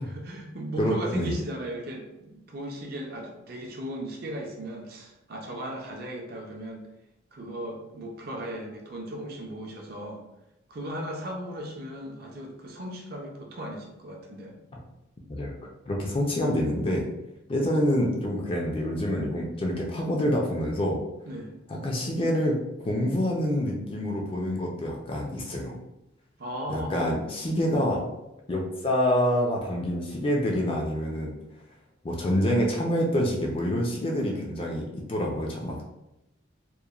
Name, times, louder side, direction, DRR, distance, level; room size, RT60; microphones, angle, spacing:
voice 1, 0.0-6.9 7.3-10.2 10.7-14.6 21.3-21.5 26.4-27.0, equal, 50° right, 0 dB, 0.4 m, -37 dB
voice 2, 0.8-1.3 15.3-15.5 15.9-17.1 17.5-21.0 21.7-22.6 22.8-25.7 26.7-28.0 28.5-31.3 32.0-35.8, equal, 25° left, -1 dB, 0.3 m, -27 dB
2.9 x 2.1 x 2.3 m, 0.91 s
head